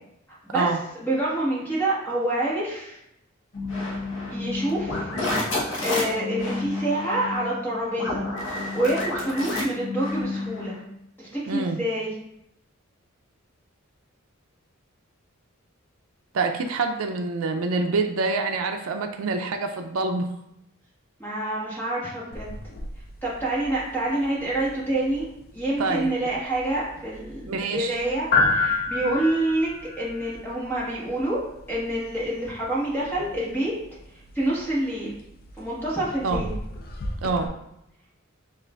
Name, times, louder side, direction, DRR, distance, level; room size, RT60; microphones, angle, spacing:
voice 1, 0.5-0.8 11.5-11.8 16.3-20.3 25.8-26.1 27.5-28.0 36.2-36.4 37.2-37.5, right 3 dB, 75° right, 5 dB, 0.4 m, -26 dB
voice 2, 1.0-3.0 4.3-5.1 5.8-8.2 8.7-10.8 11.2-12.1 21.2-22.5 23.2-25.3 25.5-29.7 30.0-31.4 31.7-33.7 34.3-35.1 35.6-36.5, right 1 dB, 10° left, -6 dB, 1.2 m, -27 dB
sound 1, 3.5-10.8, left 2 dB, 65° left, 0.9 m, -30 dB
sound 2, 22.3-37.5, left 3 dB, 45° left, 0.4 m, -32 dB
6.3 x 2.4 x 2.3 m, 0.82 s
head